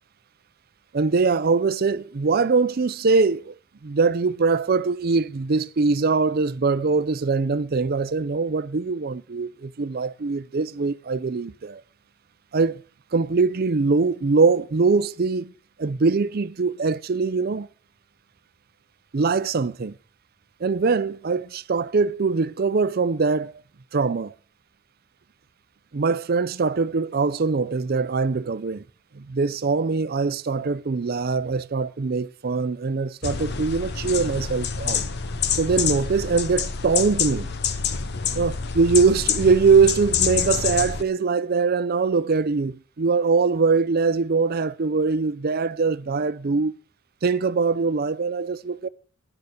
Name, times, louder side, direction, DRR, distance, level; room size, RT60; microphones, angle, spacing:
voice 1, 0.9-3.5 3.8-11.8 12.5-12.8 13.1-15.5 15.8-17.7 19.1-19.9 20.6-23.5 23.9-24.3 25.9-28.8 29.1-35.0 35.5-37.5 38.3-46.8 47.2-48.9, right 4 dB, 45° right, 0.5 m, -22 dB
sound 1, 33.2-41.0, left 6 dB, 50° left, 0.8 m, -27 dB
9.9 x 6.7 x 7.8 m
head